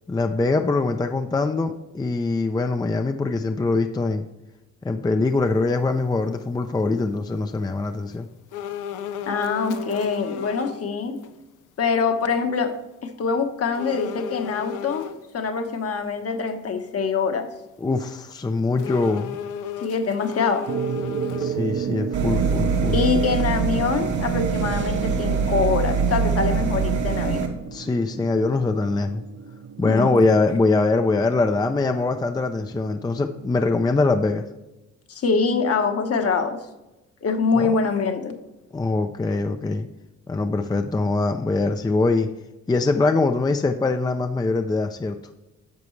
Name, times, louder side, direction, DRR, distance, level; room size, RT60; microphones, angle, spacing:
voice 1, 0.1-4.2 4.8-8.3 17.8-19.4 21.4-23.0 27.7-29.2 29.8-34.4 37.5-37.7 38.7-39.9 40.3-42.3 42.7-45.1, left 3 dB, 15° left, 6 dB, 0.5 m, -23 dB
sound 1, 8.5-10.8 11.2-11.3 13.7-15.2 18.8-21.8 22.2-22.3, left 8 dB, 85° left, 0.7 m, -34 dB
voice 2, 9.2-11.2 11.8-15.1 15.3-17.5 19.8-20.7 22.9-27.4 29.8-30.2 35.1-36.7 37.2-38.4, left 5 dB, 50° left, 5 dB, 1.2 m, -24 dB
sound 2, 20.7-34.0, right 7 dB, 40° right, 0.6 m, -34 dB
sound 3, 22.1-27.5, right 5 dB, 70° right, 1.6 m, -23 dB
10.5 x 6.7 x 3.2 m, 0.99 s
cardioid pair, 90°, 30 cm